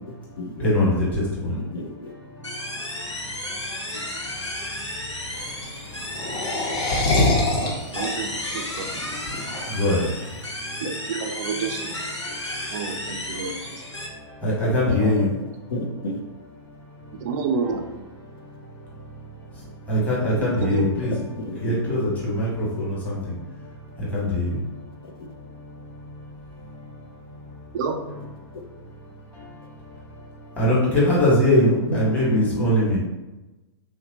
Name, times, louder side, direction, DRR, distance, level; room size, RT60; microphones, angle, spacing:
voice 1, 0.6-1.6 9.7-10.1 14.4-15.3 19.9-21.1 21.6-23.3 24.0-24.6 30.6-33.0, left 1 dB, 10° left, -8 dB, 1.3 m, -21 dB
voice 2, 1.7-2.1 10.8-10.9 15.7-16.2 21.4-21.8 32.3-32.7, left 1 dB, 55° left, 2 dB, 0.6 m, -31 dB
sound 1, 2.4-14.1, left 1 dB, 90° left, 0.7 m, -33 dB
sound 2, 5.2-10.4, left 2 dB, 30° left, 0.9 m, -25 dB
voice 3, 7.6-9.0 10.8-11.9 12.7-13.8 15.0-15.1 17.2-17.9 20.6-20.9 27.7-28.0, right 5 dB, 40° right, 5 dB, 0.4 m, -29 dB
3.1 x 2.7 x 2.8 m, 1.1 s
figure-of-eight pair, 110°, 15 cm